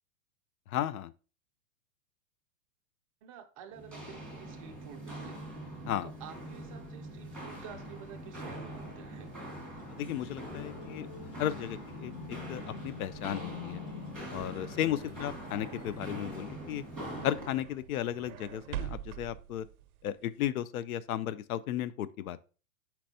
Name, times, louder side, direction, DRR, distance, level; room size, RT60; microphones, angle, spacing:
voice 1, 0.7-1.1 5.9-6.1 10.0-11.1 11.4-12.1 12.5-13.8 14.3-16.8 17.2-19.7 20.0-22.5, left 11 dB, 85° left, 0.5 m, -34 dB
voice 2, 3.2-5.5 6.0-9.3 15.1-15.6, right 8 dB, 25° right, 0.4 m, -50 dB
Walk footsteps, 3.7-17.5, right 1 dB, 5° left, 1.3 m, -43 dB
sound 1, 9.7-16.0, left 7 dB, 40° left, 0.8 m, -47 dB
sound 2, 14.1-20.4, right 11 dB, 85° right, 0.5 m, -45 dB
4.5 x 4.2 x 2.6 m
hypercardioid pair, 140°, 42 cm